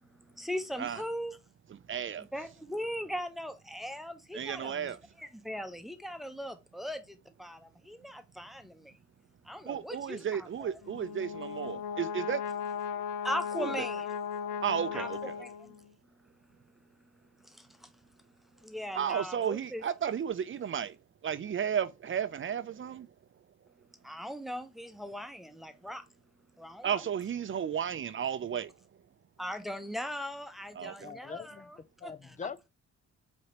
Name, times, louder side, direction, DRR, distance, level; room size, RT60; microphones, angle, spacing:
voice 1, 0.0-1.4 2.2-9.0 9.4-10.8 13.2-14.1 14.9-15.1 15.4-15.8 16.3-16.4 17.4-17.9 18.5-19.8 24.0-26.0 26.6-26.9 29.4-32.4, equal, ahead, 0.9 m, -39 dB
voice 2, 1.9-2.3 4.3-5.0 9.7-12.4 13.6-13.9 14.6-15.4 18.9-20.9 21.2-23.1 26.8-28.7 30.8-31.1, right 8 dB, 40° right, 0.5 m, -33 dB
Brass instrument, 10.8-15.9, left 7 dB, 90° left, 0.5 m, -37 dB
voice 3, 30.8-31.7 32.0-32.7, left 5 dB, 25° left, 0.5 m, -43 dB
4.9 x 3.1 x 2.9 m
supercardioid pair, 60°, 30 cm